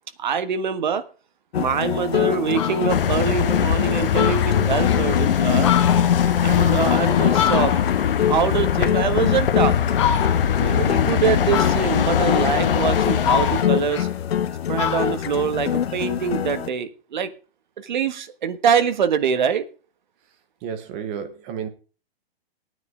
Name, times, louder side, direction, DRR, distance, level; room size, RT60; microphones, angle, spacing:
voice 1, 0.2-1.0 1.6-5.7 6.4-7.7 8.3-9.7 10.6-14.1 14.7-17.3 17.8-19.6, right 7 dB, 50° right, 1.5 m, -24 dB
sound 1, 1.5-16.7, left 9 dB, 85° left, 1.2 m, -25 dB
Fowl, 1.9-2.0 2.4-3.0 3.5-3.6 3.8-3.9 4.1-5.0 5.5-8.1 8.5-9.5 9.9-10.6 11.5-12.2 12.7-14.5 14.8-16.4, left 9 dB, 30° left, 1.4 m, -28 dB
sound 2, 2.9-13.6, left 9 dB, 65° left, 1.2 m, -21 dB
voice 2, 20.6-21.7, right 7 dB, 10° right, 0.7 m, -31 dB
15.5 x 9.5 x 5.0 m
hypercardioid pair, 180°, 30 cm